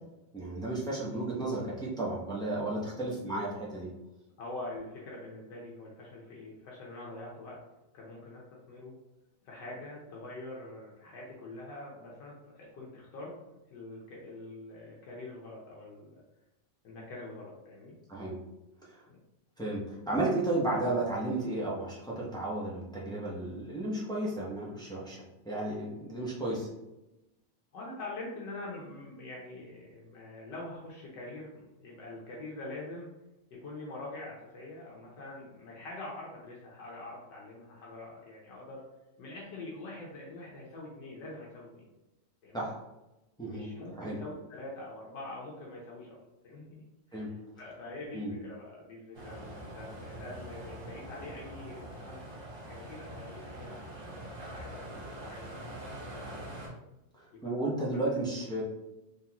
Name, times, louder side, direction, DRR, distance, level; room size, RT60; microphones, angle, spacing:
voice 1, 0.3-3.9 18.1-18.4 18.9-19.0 19.6-25.2 25.4-26.7 42.5-42.8 43.4-43.7 44.0-44.2 47.1-47.3 48.1-48.3 57.4-58.6, right 2 dB, 5° left, -6 dB, 0.5 m, -33 dB
voice 2, 4.4-7.6 7.9-8.9 9.4-13.4 13.7-16.2 16.8-18.0 19.1-19.2 27.7-33.1 33.5-38.8 39.2-41.9 42.4-42.7 43.4-46.8 47.3-52.3 52.7-55.8 56.1-56.4 57.4-57.5 58.1-58.2, left 2 dB, 75° left, -4 dB, 1.5 m, -45 dB
sound 1, 49.1-56.7, right 1 dB, 35° right, 1.5 m, -44 dB
3.8 x 3.5 x 2.9 m, 0.95 s
omnidirectional pair, 1.9 m